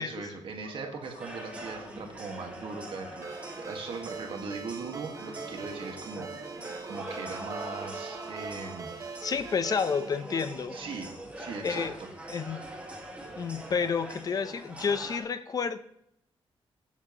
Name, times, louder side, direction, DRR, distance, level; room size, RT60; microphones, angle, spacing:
voice 1, 0.0-3.3 3.6-9.0 10.7-12.1, right 4 dB, 60° right, 3 dB, 1.8 m, -40 dB
sound 1, 0.6-8.8, left 4 dB, 90° left, 4.6 m, -53 dB
sound 2, 1.0-15.2, right 1 dB, 15° right, 1.9 m, -43 dB
Ringtone, 3.2-10.1, right 5 dB, 30° right, 1.1 m, -42 dB
voice 2, 9.2-10.8 11.6-11.9 12.3-12.6 13.4-15.8, left 6 dB, 40° left, 11 dB, 0.7 m, -30 dB
16.5 x 7.3 x 3.1 m, 0.76 s
wide cardioid pair, 145°, 10 cm